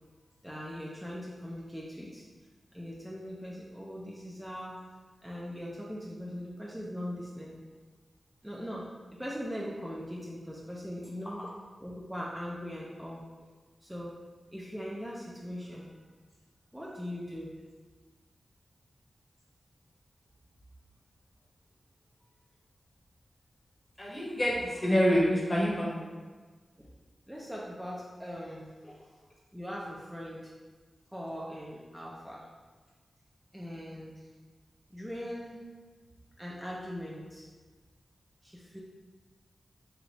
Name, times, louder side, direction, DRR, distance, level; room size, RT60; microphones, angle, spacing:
voice 1, 0.4-2.2 2.7-4.8 5.2-7.6 8.4-11.4 11.8-13.2 13.8-14.2 14.5-16.0 16.7-17.5 26.8-26.9 27.3-28.7 29.5-30.5 31.1-32.5 33.5-34.3 34.9-35.6 36.4-37.5 38.4-38.8, equal, 5° right, -5 dB, 0.5 m, -40 dB
voice 2, 24.0-26.1 28.8-28.9, equal, 30° left, -4 dB, 0.9 m, -27 dB
3.3 x 2.4 x 3.9 m, 1.4 s
wide cardioid pair, 100°, 0 cm